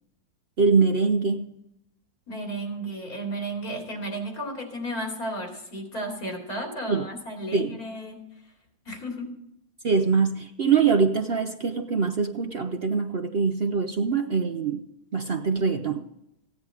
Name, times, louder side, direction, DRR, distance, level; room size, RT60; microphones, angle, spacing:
voice 1, 0.6-1.6 6.9-7.0 7.5-7.8 9.8-14.8 15.1-16.0, right 5 dB, 50° right, 6 dB, 0.8 m, -23 dB
voice 2, 2.3-8.2 8.9-9.3, right 1 dB, 70° left, 1 dB, 3.4 m, -33 dB
16.0 x 9.9 x 4.8 m, 0.83 s
omnidirectional pair, 1.6 m